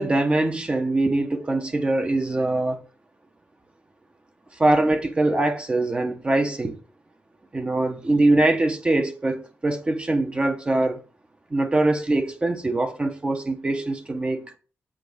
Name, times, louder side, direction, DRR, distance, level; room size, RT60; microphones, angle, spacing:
voice 1, 0.0-2.8 4.6-6.8 7.5-11.0 11.5-14.4, right 2 dB, 20° right, 1.0 m, -23 dB
7.7 x 4.0 x 6.5 m
wide cardioid pair, 120°, 5 cm